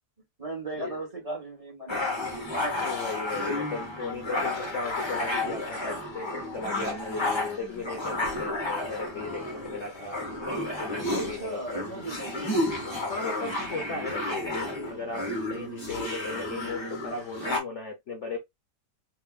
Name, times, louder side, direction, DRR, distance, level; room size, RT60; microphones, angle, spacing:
voice 1, 0.4-2.4 11.1-12.5, right 2 dB, 20° right, 1.6 m, -37 dB
sound 1, 1.9-17.6, left 2 dB, 20° left, 0.9 m, -32 dB
voice 2, 2.8-10.2 10.8-11.9 13.1-18.4, left 3 dB, 50° left, 1.0 m, -36 dB
3.6 x 2.9 x 2.3 m
omnidirectional pair, 1.8 m